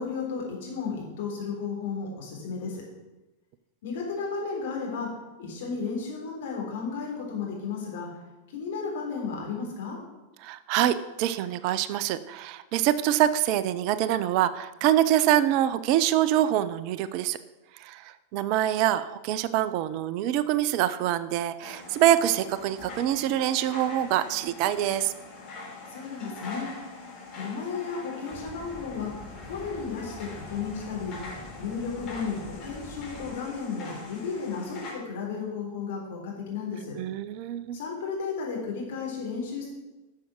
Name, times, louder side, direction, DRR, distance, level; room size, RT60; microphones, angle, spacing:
voice 1, 0.0-2.8 3.8-5.1 5.4-8.1 8.5-10.0 25.9-26.7 27.4-31.2 31.6-36.9 37.7-39.7, left 5 dB, 55° left, -1 dB, 3.6 m, -33 dB
voice 2, 10.4-17.4 17.7-25.1 37.0-37.8, right 12 dB, 45° right, 14 dB, 0.5 m, -25 dB
sound 1, 21.6-34.9, left 3 dB, 30° left, 3.7 m, -43 dB
sound 2, 28.3-33.3, left 2 dB, 15° left, 1.9 m, -45 dB
11.5 x 6.6 x 6.1 m, 1.1 s
figure-of-eight pair, 90°, 0 cm